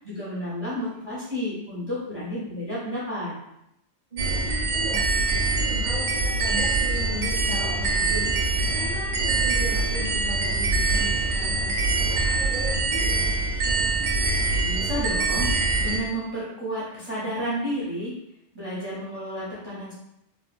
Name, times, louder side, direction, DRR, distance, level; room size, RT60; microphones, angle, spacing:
voice 1, 0.0-3.3 14.5-15.5 15.8-18.1 18.5-19.9, equal, 30° right, -7 dB, 0.5 m, -31 dB
voice 2, 4.1-5.1 5.5-13.2, left 1 dB, 25° left, -9 dB, 1.2 m, -37 dB
sound 1, 4.2-16.0, right 3 dB, 75° right, 0.8 m, -24 dB
3.1 x 2.1 x 2.4 m, 0.81 s
omnidirectional pair, 1.2 m